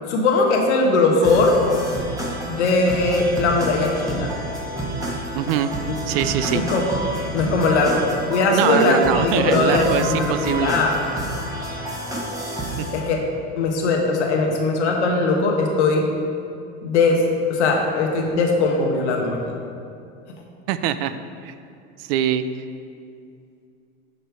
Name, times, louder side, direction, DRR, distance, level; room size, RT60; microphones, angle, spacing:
voice 1, 0.1-1.6 2.4-4.3 6.5-6.8 7.3-8.0 8.3-10.9 12.9-13.2 13.5-16.0 16.8-17.2 17.5-19.4, left 3 dB, 85° left, 1 dB, 1.3 m, -19 dB
sound 1, 1.2-13.0, right 1 dB, 10° right, 1.1 m, -29 dB
voice 2, 5.3-5.7 6.1-6.6 8.5-10.7 12.8-12.9 20.7-21.2 21.4-21.5 22.0-22.4, right 10 dB, 60° right, 12 dB, 0.5 m, -23 dB
6.6 x 5.3 x 4.5 m, 2.5 s
supercardioid pair, 120°, 33 cm